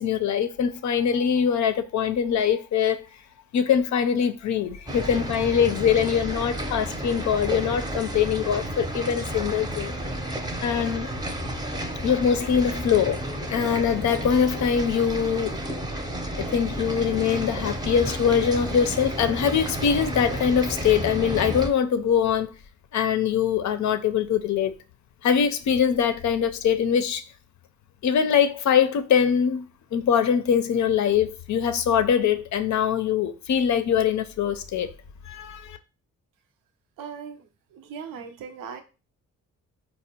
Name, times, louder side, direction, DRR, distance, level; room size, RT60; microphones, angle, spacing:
voice 1, 0.0-3.0 3.5-9.9 10.6-11.1 12.0-15.6 16.4-22.5 22.9-24.8 25.2-27.2 28.0-29.6 29.9-34.9 35.3-35.8, left 8 dB, 60° left, 0.5 m, -23 dB
sound 1, 4.9-21.7, equal, 10° right, 0.7 m, -31 dB
voice 2, 37.0-38.8, right 6 dB, 80° right, 0.6 m, -39 dB
4.2 x 2.1 x 2.8 m
supercardioid pair, 50°, 33 cm